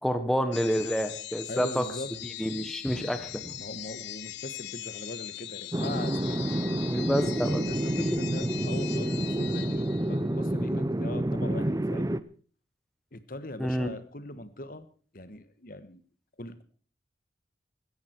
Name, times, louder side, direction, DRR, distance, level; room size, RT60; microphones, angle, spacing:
voice 1, 0.0-1.8 2.2-3.6 6.9-7.6 8.0-8.2 13.6-13.9, equal, ahead, 9 dB, 1.1 m, -29 dB
sound 1, 0.5-10.3, left 14 dB, 65° left, 0.9 m, -41 dB
voice 2, 1.5-2.1 3.6-6.4 6.9-12.1 13.1-14.9 15.1-16.0 16.4-16.6, left 1 dB, 50° left, 13 dB, 1.3 m, -41 dB
sound 2, 5.7-12.2, right 1 dB, 20° right, 0.6 m, -29 dB
16.0 x 14.5 x 4.5 m, 0.43 s
head